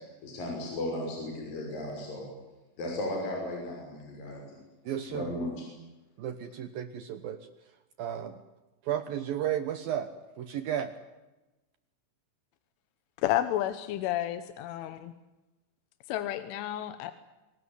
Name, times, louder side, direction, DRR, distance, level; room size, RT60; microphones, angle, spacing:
voice 1, 0.2-2.3 2.8-4.4 5.1-5.6, left 1 dB, 45° left, 0 dB, 7.5 m, -35 dB
voice 2, 4.9-5.3 6.2-7.5 8.0-8.4 8.8-10.1 10.4-10.9, right 10 dB, 70° right, 11 dB, 2.3 m, -33 dB
voice 3, 13.2-15.1 16.1-17.1, left 13 dB, 80° left, 11 dB, 3.6 m, -31 dB
26.0 x 19.0 x 9.7 m, 1.1 s
omnidirectional pair, 5.6 m